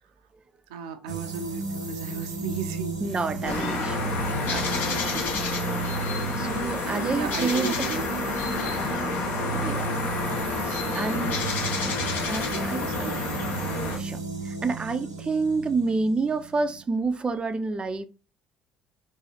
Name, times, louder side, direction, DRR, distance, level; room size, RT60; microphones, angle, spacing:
voice 1, 0.7-3.0 3.5-3.7 4.9-5.3 6.8-8.0 8.3-8.4 10.7-11.5 12.5-13.4, right 5 dB, 70° right, 0.5 m, -37 dB
sound 1, 1.1-16.8, right 4 dB, 85° right, 1.0 m, -33 dB
voice 2, 3.0-4.0 4.5-5.1 6.4-7.9 9.5-9.9 10.6-11.4 12.3-12.9 14.0-14.2 14.4-18.0, right 3 dB, 25° right, 0.5 m, -29 dB
sound 2, 3.4-14.0, left 4 dB, 55° left, 1.0 m, -29 dB
4.1 x 2.7 x 4.0 m
figure-of-eight pair, 55°, 4 cm